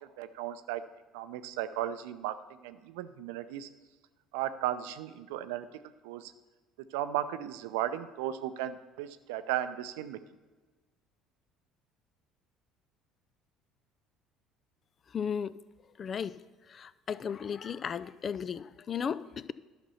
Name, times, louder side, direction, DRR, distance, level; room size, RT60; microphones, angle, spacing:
voice 1, 0.0-0.8 1.1-3.7 4.3-5.7 6.0-6.3 6.9-10.2, right 12 dB, 75° right, 11 dB, 0.5 m, -35 dB
voice 2, 15.1-15.6 16.0-16.4 16.7-19.5, left 7 dB, 40° left, 17 dB, 0.4 m, -35 dB
11.5 x 5.9 x 5.7 m, 1.3 s
hypercardioid pair, 60°, 0 cm